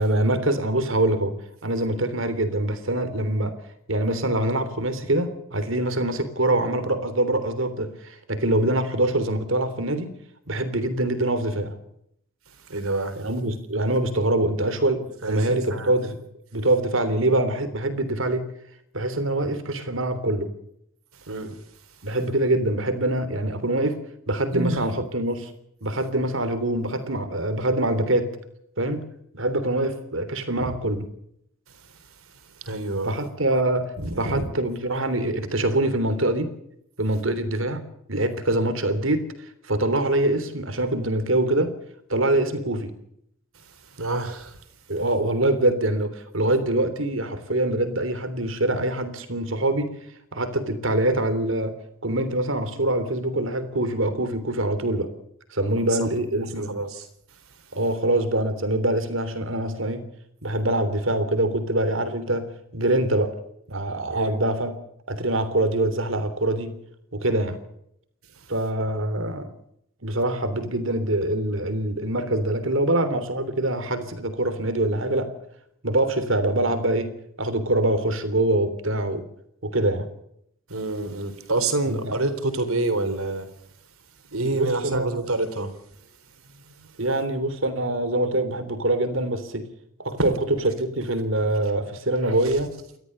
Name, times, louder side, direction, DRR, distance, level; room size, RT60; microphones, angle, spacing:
voice 1, 0.0-1.3 1.6-3.5 3.9-10.1 10.5-11.7 13.2-16.1 16.5-18.5 18.9-20.5 22.0-24.0 24.3-25.5 25.8-28.3 28.8-29.0 29.3-31.0 33.0-36.5 37.0-37.8 38.1-39.3 39.6-41.7 42.1-42.9 44.9-49.9 50.3-51.7 52.0-55.1 55.5-56.7 57.7-60.1 60.4-63.3 63.7-64.7 65.1-66.7 67.1-67.6 68.5-69.5 70.0-75.3 75.8-77.1 77.4-79.2 79.6-80.1 81.9-82.2 84.5-85.1 87.0-89.6 90.0-90.3 90.7-92.7, right 1 dB, 65° right, 10 dB, 3.3 m, -24 dB
voice 2, 12.5-13.2 15.2-15.9 21.1-21.6 24.5-24.9 30.6-30.7 31.7-33.2 34.0-34.5 43.5-44.6 55.8-56.1 56.6-57.6 64.1-64.4 68.3-68.5 80.7-83.5 84.3-85.7 86.5-87.0 92.2-92.6, right 2 dB, 90° right, 9 dB, 4.0 m, -29 dB
30.0 x 13.5 x 6.7 m, 0.75 s
head